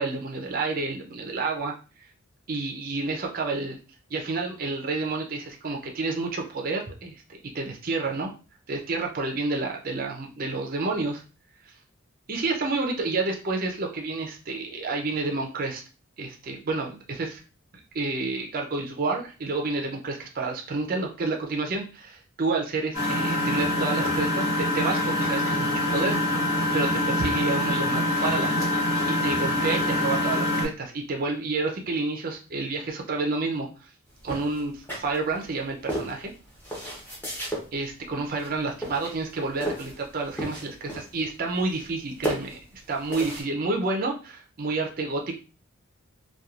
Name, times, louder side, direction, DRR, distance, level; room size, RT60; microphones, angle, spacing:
voice 1, 0.0-1.7 2.0-2.1 2.5-3.8 4.1-8.3 8.7-11.2 12.3-15.8 16.2-17.4 17.9-26.4 26.7-28.7 29.1-33.9 34.2-36.3 37.7-45.3, right 3 dB, 40° right, 1 dB, 0.4 m, -29 dB
Engine, 22.9-30.7, left 1 dB, 70° left, 1.3 m, -25 dB
sound 1, 34.2-35.5 35.9-37.7 38.3-38.6 38.8-40.0 40.3-41.2 41.5-42.0 42.2-43.4, right 1 dB, 10° left, 0.7 m, -33 dB
3.0 x 2.2 x 2.3 m, 0.33 s
head